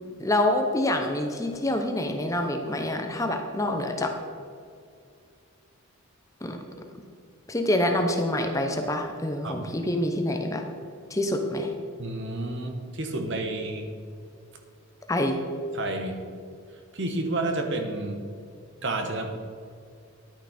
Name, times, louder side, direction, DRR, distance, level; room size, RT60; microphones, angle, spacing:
voice 1, 0.2-4.1 6.4-6.6 7.5-10.6 11.1-11.7 15.1-15.4, left 1 dB, 15° left, 4 dB, 0.7 m, -26 dB
voice 2, 12.0-13.9 15.7-16.3 16.9-18.2 18.8-19.3, right 2 dB, 55° right, 5 dB, 1.2 m, -30 dB
11.0 x 9.4 x 4.3 m, 2.3 s
head